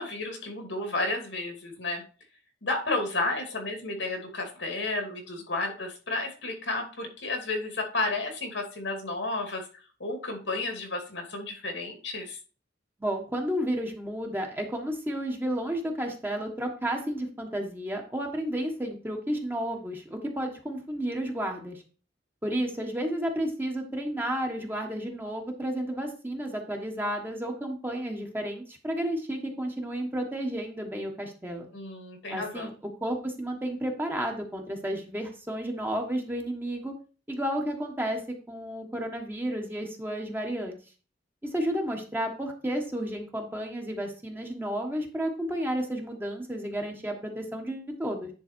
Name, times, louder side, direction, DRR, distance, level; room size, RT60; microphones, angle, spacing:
voice 1, 0.0-2.0 2.6-9.7 10.0-12.4 31.7-32.7, left 2 dB, 90° left, 3 dB, 2.5 m, -32 dB
voice 2, 13.0-21.8 22.4-31.7 32.3-32.7 33.0-36.9 37.3-38.2 38.5-40.8 41.4-48.3, right 1 dB, 10° right, 2 dB, 1.3 m, -32 dB
10.0 x 3.9 x 4.5 m, 0.36 s
head